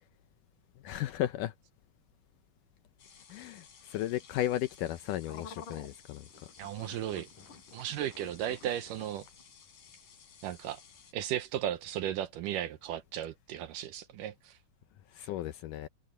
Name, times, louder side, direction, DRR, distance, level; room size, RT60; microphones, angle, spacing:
voice 1, 0.8-1.5 3.3-6.3 15.1-15.9, left 13 dB, 75° left, 2.0 m, -34 dB
sound 1, 3.0-11.1, left 5 dB, 60° left, 5.2 m, -52 dB
voice 2, 6.6-7.3 7.7-9.3 10.4-10.8 11.1-14.6, right 11 dB, 75° right, 2.1 m, -35 dB
omnidirectional pair, 4.3 m